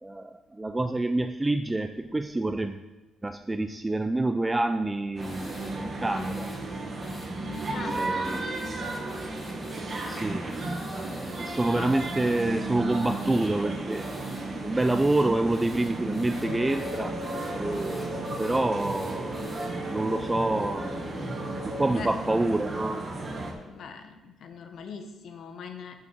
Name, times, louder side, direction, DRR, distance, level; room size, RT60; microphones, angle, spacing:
voice 1, 0.0-2.8 3.2-6.5 7.7-8.7 10.1-10.5 11.4-14.0 14.4-17.2 17.6-18.1 18.4-19.4 19.9-21.0 21.6-23.0, right 2 dB, 15° right, 8 dB, 0.4 m, -27 dB
sound 1, 5.2-5.7 6.1-6.6 7.0-12.5 12.9-13.5 13.9-14.4 14.8-19.7, left 1 dB, 30° left, 3.2 m, -50 dB
sound 2, 5.2-23.5, right 2 dB, 40° right, 1.6 m, -34 dB
voice 2, 7.4-8.3 10.0-10.3 11.8-12.5 20.5-20.8 21.9-22.1 23.7-26.0, left 6 dB, 65° left, 7 dB, 1.0 m, -42 dB
sound 3, 16.3-21.9, equal, 85° left, 2.5 m, -37 dB
6.9 x 6.1 x 6.3 m, 1.1 s
cardioid pair, 90°, 0 cm